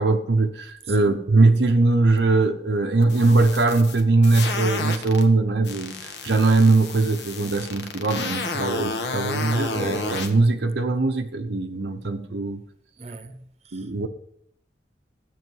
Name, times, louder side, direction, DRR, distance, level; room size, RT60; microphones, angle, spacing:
voice 1, 0.0-12.6 13.7-14.1, right 3 dB, 65° right, 0.8 m, -21 dB
voice 2, 0.9-1.2 13.0-14.1, right 4 dB, 35° right, 0.9 m, -42 dB
sound 1, 3.0-5.2 5.6-10.3, left 3 dB, 70° left, 1.3 m, -31 dB
12.5 x 8.6 x 5.4 m
head